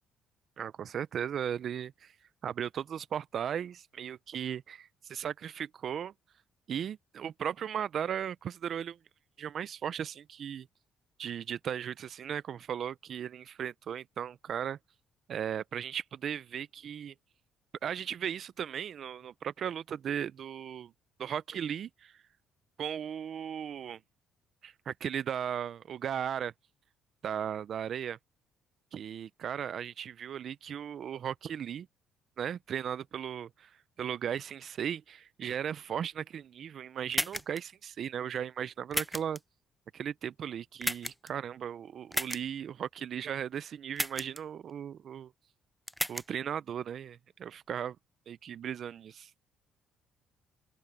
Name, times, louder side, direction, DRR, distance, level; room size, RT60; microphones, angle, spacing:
voice 1, 0.6-2.1 2.4-6.1 6.7-9.0 9.4-10.7 11.2-14.8 15.3-17.1 17.8-20.9 21.2-22.2 22.8-24.0 24.6-26.5 27.2-28.2 28.9-31.9 32.4-39.4 39.9-45.3 46.1-48.0 48.3-49.3, right 9 dB, 55° right, 0.6 m, -36 dB
sound 1, 37.1-37.6 38.9-39.4 40.8-41.3 42.1-42.4 43.9-44.4 45.9-46.2, equal, ahead, 0.3 m, -33 dB
open air
supercardioid pair, 80°, 0 cm